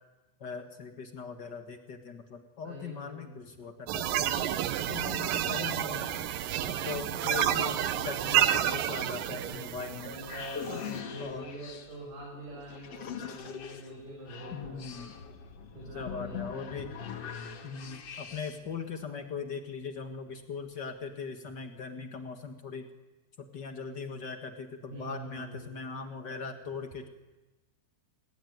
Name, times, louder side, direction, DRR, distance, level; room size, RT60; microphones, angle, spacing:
voice 1, 0.4-4.5 4.8-6.1 6.7-7.8 8.0-10.1 11.2-11.5 14.5-15.2 15.9-16.9 17.6-22.9 23.4-27.1, left 5 dB, 75° left, 7 dB, 0.9 m, -40 dB
voice 2, 2.6-3.5 4.8-5.9 7.1-8.4 9.0-14.8 15.7-16.4 16.9-17.7 24.9-25.7, right 1 dB, 45° right, -2 dB, 7.5 m, -45 dB
sound 1, 3.9-10.8, right 11 dB, 70° right, 2.3 m, -30 dB
sound 2, 9.9-18.7, left 7 dB, 50° left, 1.9 m, -42 dB
29.5 x 20.0 x 9.5 m, 1.1 s
omnidirectional pair, 4.9 m